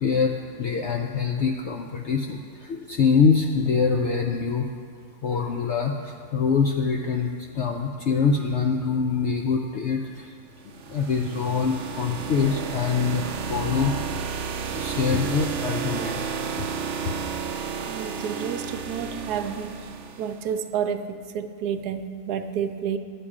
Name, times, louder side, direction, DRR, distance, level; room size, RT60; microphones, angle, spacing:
voice 1, 0.0-4.7 5.2-10.3 10.9-13.9 14.7-16.7 17.0-17.1 17.7-17.9, left 5 dB, 70° left, 2 dB, 0.6 m, -24 dB
sound 1, 10.6-20.5, right 6 dB, 60° right, 0.8 m, -32 dB
voice 2, 17.9-19.7 20.2-23.0, right 8 dB, 80° right, 8 dB, 1.1 m, -30 dB
9.9 x 7.9 x 4.8 m, 2.2 s
omnidirectional pair, 1.7 m